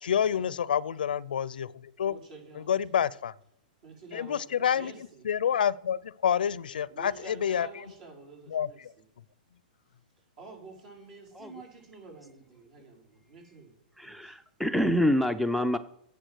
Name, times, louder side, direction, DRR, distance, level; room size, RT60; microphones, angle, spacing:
voice 1, 0.0-2.2 2.5-3.3 4.1-4.9 5.2-7.7 8.5-8.9, left 8 dB, 85° left, 0.5 m, -28 dB
voice 2, 2.1-3.0 3.8-5.3 6.9-8.8 10.4-13.7 14.0-14.4, right 3 dB, 60° right, 5.1 m, -49 dB
voice 3, 14.0-15.8, left 1 dB, ahead, 0.4 m, -26 dB
10.0 x 7.5 x 6.3 m
hypercardioid pair, 130°, 5 cm